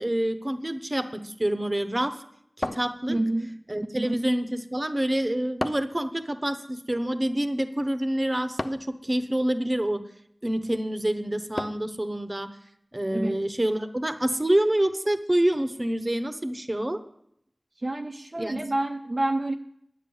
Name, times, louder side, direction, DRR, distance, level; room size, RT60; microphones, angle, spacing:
voice 1, 0.0-2.2 2.6-3.2 3.7-10.0 10.4-12.5 12.9-17.0 18.4-18.6, right 1 dB, 35° right, 10 dB, 0.9 m, -27 dB
sound 1, 2.6-3.5 5.6-6.1 8.6-9.0 11.6-12.0, left 1 dB, 50° left, 0.4 m, -33 dB
voice 2, 3.1-3.6 3.9-4.2 13.1-13.5 17.8-19.5, right 1 dB, 60° right, 2 dB, 0.6 m, -28 dB
9.7 x 8.0 x 7.0 m, 0.73 s
wide cardioid pair, 40°, 0 cm